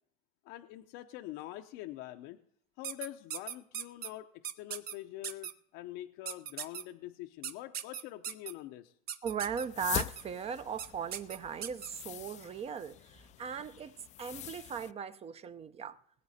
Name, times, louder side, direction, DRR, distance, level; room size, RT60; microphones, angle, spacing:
voice 1, 0.4-2.4 2.8-8.9, left 15 dB, 65° left, 0.7 m, -45 dB
sound 1, 2.8-4.1 4.4-4.9 5.2-5.5 6.3-6.8 7.4-8.5 9.1-9.7 10.0-10.2 10.8-10.9 11.1-11.9, right 9 dB, 45° right, 1.0 m, -38 dB
voice 2, 9.2-16.0, right 7 dB, 30° right, 0.7 m, -38 dB
sound 2, 9.5-14.9, left 13 dB, 35° left, 0.4 m, -43 dB
20.5 x 8.8 x 4.2 m
supercardioid pair, 120°, 21 cm